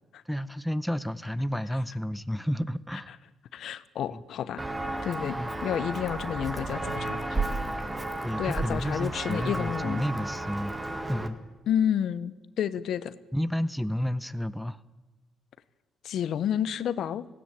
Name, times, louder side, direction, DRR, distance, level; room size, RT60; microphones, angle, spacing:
voice 1, 0.3-3.2 4.1-4.2 5.3-5.5 8.2-10.8 11.1-11.4 13.3-14.8, equal, ahead, 13 dB, 0.7 m, -31 dB
voice 2, 3.5-4.6 5.0-7.6 8.4-10.1 11.7-13.1 16.0-17.3, left 9 dB, 70° left, 15 dB, 0.9 m, -30 dB
Walk footsteps, 4.6-11.3, right 2 dB, 15° right, 1.9 m, -33 dB
18.0 x 16.5 x 8.9 m, 1.2 s
cardioid pair, 90°, 0 cm